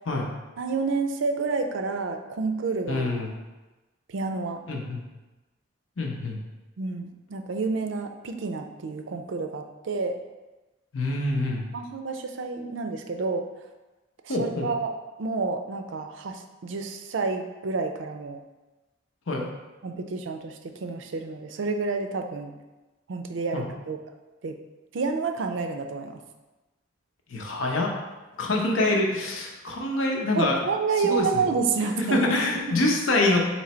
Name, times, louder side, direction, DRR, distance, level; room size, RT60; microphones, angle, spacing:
voice 1, 0.6-3.1 4.1-4.6 6.8-10.1 11.7-13.5 14.2-14.9 15.2-18.4 19.8-22.5 23.1-24.0 24.4-24.6 24.9-26.2 30.3-32.6, right 4 dB, 70° right, 6 dB, 0.4 m, -29 dB
voice 2, 2.9-3.3 4.7-5.0 6.0-6.4 10.9-11.6 14.3-14.7 19.3-19.4 23.5-23.7 27.3-27.9 28.4-30.6 31.0-31.5 32.0-33.4, left 2 dB, 85° left, 0 dB, 0.8 m, -25 dB
3.9 x 3.1 x 4.3 m, 1.1 s
head